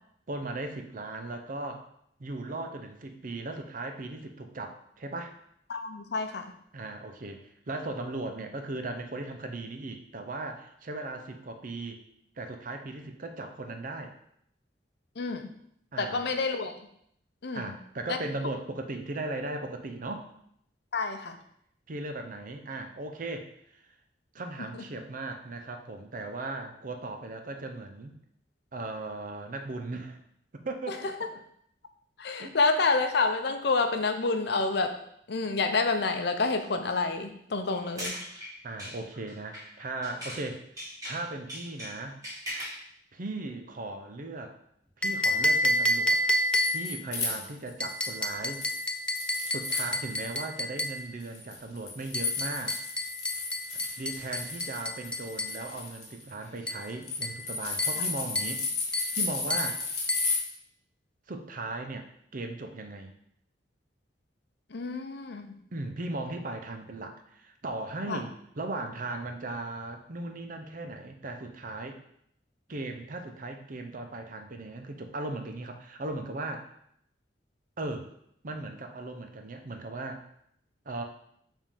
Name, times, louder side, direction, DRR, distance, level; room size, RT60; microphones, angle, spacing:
voice 1, 0.3-1.9 2.2-5.3 6.7-12.0 12.4-14.1 15.9-16.3 17.5-20.3 21.9-23.8 24.3-28.2 28.7-30.2 30.5-31.1 32.4-32.6 38.6-40.6 41.1-42.2 43.1-44.6 45.0-46.2 46.7-48.7 49.5-52.8 53.7-58.6 58.9-59.8 61.3-62.1 62.3-63.1 65.7-72.0 72.7-76.7 77.8-78.1 78.4-80.2 80.9-81.0, right 2 dB, 50° right, 6 dB, 0.7 m, -37 dB
voice 2, 5.7-6.5 15.2-15.5 16.0-16.7 17.4-17.7 18.1-18.2 20.9-21.4 30.9-31.0 32.2-35.0 35.3-38.1 58.0-58.1 64.7-65.5 68.1-68.2, left 3 dB, 65° left, 7 dB, 0.6 m, -28 dB
sound 1, 37.7-40.5 40.8-42.8, equal, 20° right, 2.1 m, -40 dB
sound 2, 45.0-47.0 47.8-51.0 52.1-55.6 56.7-56.9 57.2-57.5 57.8-58.1 58.4-58.6 58.9-59.2 59.5-59.8 60.1-60.3, left 1 dB, 5° left, 0.4 m, -30 dB
sound 3, 46.1-48.2 48.5-50.4 50.8-60.4, left 3 dB, 40° left, 1.7 m, -34 dB
5.3 x 3.6 x 5.1 m, 0.70 s
head